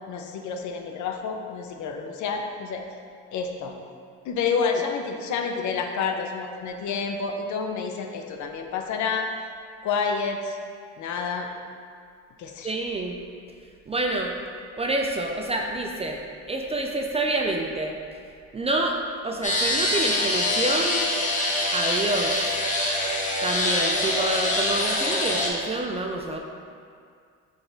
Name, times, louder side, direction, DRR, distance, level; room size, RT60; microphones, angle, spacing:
voice 1, 0.1-2.8 3.3-3.7 4.2-9.3 9.8-10.6 11.0-11.5 12.4-12.7, left 5 dB, 60° left, 4 dB, 0.6 m, -29 dB
voice 2, 12.6-13.2 13.9-14.4 14.8-16.2 16.5-17.9 18.5-19.0 19.2-21.1 21.7-22.6 23.4-26.4, right 2 dB, 20° right, 1 dB, 0.3 m, -27 dB
sound 1, 19.4-25.5, left 1 dB, 25° left, 0.7 m, -24 dB
3.9 x 3.4 x 3.8 m, 2.2 s
supercardioid pair, 75°, 33 cm